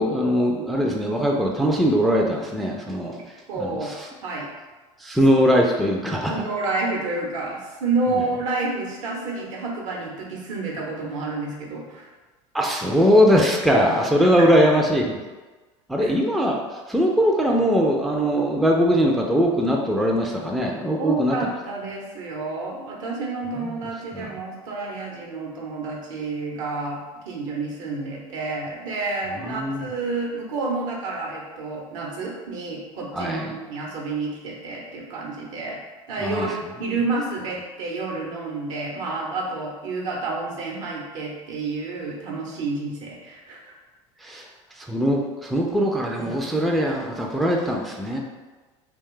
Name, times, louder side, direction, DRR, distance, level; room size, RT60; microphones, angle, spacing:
voice 1, 0.0-3.1 3.5-4.1 5.0-6.3 12.5-15.2 15.9-16.6 16.9-21.4 23.6-23.7 24.1-24.3 29.4-29.9 33.1-33.5 36.2-36.5 36.9-37.0 44.2-44.5 44.8-48.2, equal, ahead, -1 dB, 0.4 m, -21 dB
voice 2, 3.5-4.0 4.2-4.5 6.3-12.1 14.2-14.3 16.0-16.1 21.0-35.8 36.1-43.6, right 3 dB, 70° right, -2 dB, 0.9 m, -29 dB
2.5 x 2.3 x 3.7 m, 1.3 s
hypercardioid pair, 75°, 17 cm